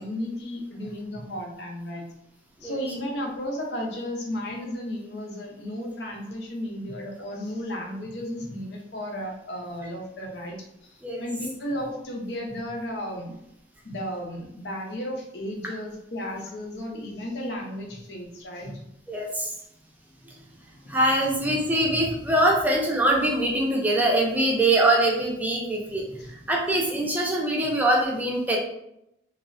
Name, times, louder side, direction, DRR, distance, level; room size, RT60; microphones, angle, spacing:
voice 1, 0.0-2.1 2.6-13.3 13.8-18.8 26.2-26.3, equal, 80° left, 0 dB, 0.6 m, -34 dB
voice 2, 19.1-19.5 20.9-28.6, right 1 dB, 10° right, -1 dB, 0.4 m, -23 dB
3.1 x 2.0 x 2.5 m, 0.80 s
head